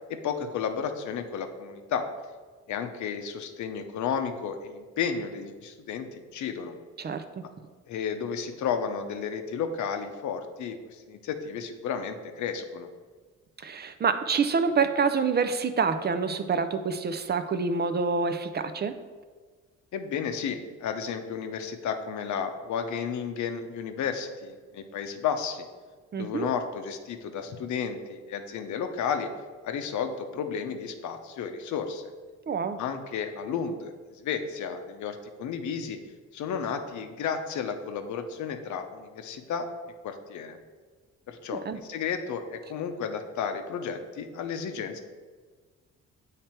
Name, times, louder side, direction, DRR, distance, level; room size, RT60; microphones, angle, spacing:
voice 1, 0.1-2.1 2.7-6.8 7.9-12.9 19.9-25.7 26.2-29.3 29.6-32.1 32.8-36.0 36.3-39.7 40.0-40.6 41.3-45.0, left 6 dB, 70° left, 7 dB, 0.7 m, -32 dB
voice 2, 7.0-7.4 13.6-18.9 26.1-26.5 32.5-32.8 41.5-41.8, right 5 dB, 35° right, 9 dB, 0.4 m, -27 dB
7.4 x 3.3 x 4.4 m, 1.4 s
cardioid pair, 90°, 30 cm